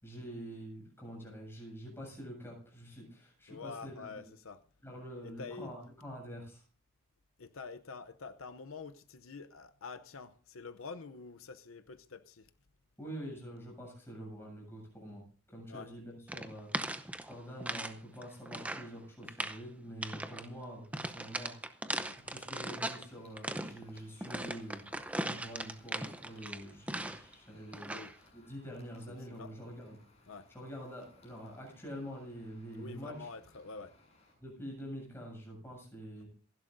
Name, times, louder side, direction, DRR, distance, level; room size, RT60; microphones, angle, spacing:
voice 1, 0.0-4.3 4.8-6.6 13.0-16.7 17.2-21.5 22.2-24.9 25.3-28.0 28.3-30.0 30.5-33.2 34.4-36.3, equal, 10° left, -1 dB, 7.4 m, -46 dB
voice 2, 3.5-4.6 5.2-5.7 7.4-12.5 15.7-15.9 22.0-22.2 27.9-28.1 29.1-29.5 30.3-30.5 32.8-33.9 36.2-36.3, left 4 dB, 75° left, 10 dB, 0.7 m, -47 dB
sound 1, 16.3-17.9 18.2-18.9 19.2-19.6 20.0-20.5 20.9-23.0 23.4-27.3 27.7-28.2, right 1 dB, 5° right, 0.7 m, -38 dB
sound 2, 23.0-34.3, left 2 dB, 30° left, 7.1 m, -64 dB
27.5 x 11.5 x 2.6 m, 0.40 s
head